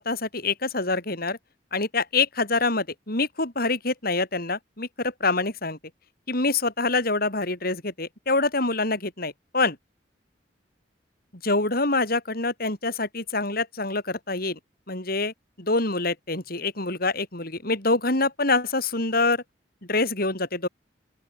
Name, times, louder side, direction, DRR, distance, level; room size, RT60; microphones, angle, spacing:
voice 1, 0.0-1.4 1.7-5.8 6.3-9.8 11.4-14.6 14.9-19.4 19.8-20.7, left 3 dB, 55° left, 5.8 m, -26 dB
open air
head